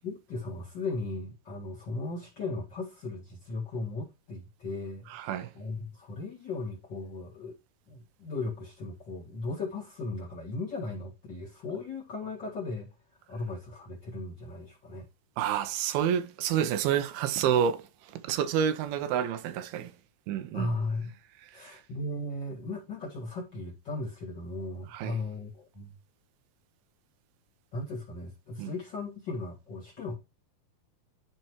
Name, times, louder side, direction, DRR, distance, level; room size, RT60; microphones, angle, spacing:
voice 1, 0.0-7.6 7.9-12.9 13.3-15.1 20.5-21.1 21.5-26.0 27.7-30.2, left 2 dB, 40° left, 1.7 m, -37 dB
voice 2, 5.1-5.5 15.4-19.9 20.3-20.7 21.5-21.8 24.9-25.2 28.6-28.7, right 9 dB, 85° right, 2.7 m, -29 dB
11.0 x 4.4 x 3.0 m
omnidirectional pair, 4.2 m